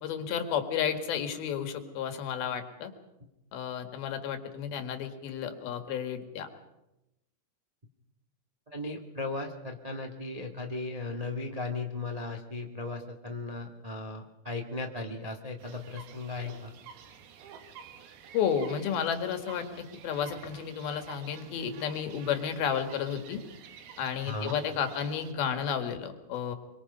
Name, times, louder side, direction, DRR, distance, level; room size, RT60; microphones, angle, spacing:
voice 1, 0.0-2.9 3.5-6.5 18.3-23.4 24.0-26.6, left 8 dB, 80° left, 7 dB, 3.6 m, -32 dB
voice 2, 8.7-16.7 24.3-24.6, left 3 dB, 50° right, 3 dB, 0.4 m, -36 dB
sound 1, 15.6-25.3, right 7 dB, 80° right, 3.4 m, -50 dB
25.0 x 23.5 x 5.5 m, 0.92 s
omnidirectional pair, 4.3 m